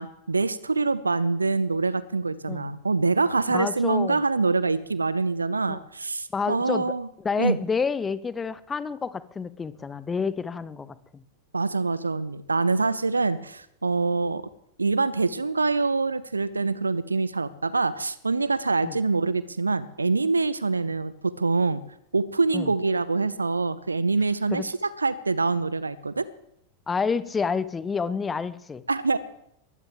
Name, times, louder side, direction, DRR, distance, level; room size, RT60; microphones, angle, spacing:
voice 1, 0.0-7.1 7.4-7.6 11.5-14.5 14.8-21.8 22.1-26.3 28.9-29.2, right 3 dB, 80° right, 18 dB, 0.8 m, -25 dB
voice 2, 3.5-4.2 5.7-5.8 6.3-11.2 18.8-19.0 22.5-22.7 24.5-24.7 26.9-28.8, left 5 dB, 15° left, 17 dB, 0.8 m, -29 dB
20.5 x 15.0 x 3.6 m, 0.74 s
figure-of-eight pair, 90°, 0 cm